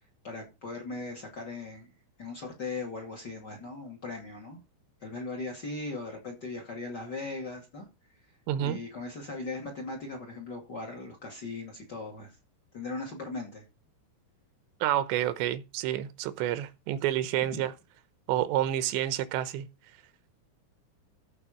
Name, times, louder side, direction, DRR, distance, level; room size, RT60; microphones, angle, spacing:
voice 1, 0.2-1.9 2.2-4.6 5.0-7.9 8.6-12.4 12.7-13.6, left 3 dB, 35° left, 1.9 m, -38 dB
voice 2, 8.5-8.8 14.8-17.7 18.3-19.7, right 12 dB, 90° right, 3.2 m, -29 dB
14.5 x 5.0 x 5.0 m
omnidirectional pair, 5.0 m